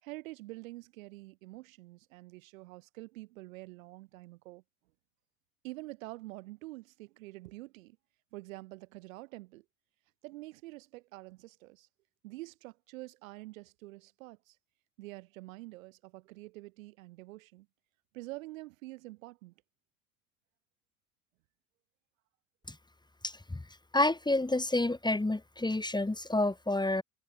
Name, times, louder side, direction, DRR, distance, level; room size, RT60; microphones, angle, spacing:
voice 1, 0.0-4.6 5.6-8.0 8.3-9.6 10.2-11.9 12.2-14.6 15.0-17.7 18.1-19.5, right 20 dB, 75° right, 6.3 m, -47 dB
voice 2, 23.2-23.6 23.9-27.0, left 2 dB, 10° left, 3.1 m, -29 dB
hypercardioid pair, 65°, 40 cm